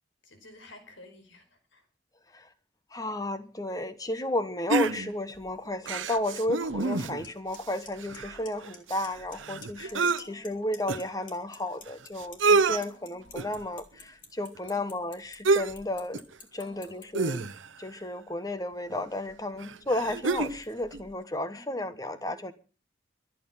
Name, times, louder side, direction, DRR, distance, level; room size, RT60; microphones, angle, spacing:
voice 1, 0.2-1.9 9.8-10.7 12.6-13.4 14.6-14.9 16.6-17.2 19.5-19.9 21.4-22.4, left 1 dB, 85° left, 5.1 m, -54 dB
voice 2, 2.9-16.2 16.5-17.5 17.8-22.5, left 1 dB, 20° left, 1.2 m, -33 dB
sound 1, 4.7-5.4 5.9-7.3 7.6-7.7 8.0-10.2 10.9-11.0 11.9-12.0 12.2-12.8 13.4-13.6 15.5-15.8 16.1-16.3 17.1-17.8 18.9-19.0 19.6-20.6 20.9-21.0, right 4 dB, 85° right, 1.0 m, -27 dB
Clock, 7.2-7.3 7.5-7.9 8.1-8.8 9.0-9.3 9.6-10.5 10.7-17.0, left 6 dB, 45° left, 3.1 m, -46 dB
24.0 x 9.0 x 5.7 m
head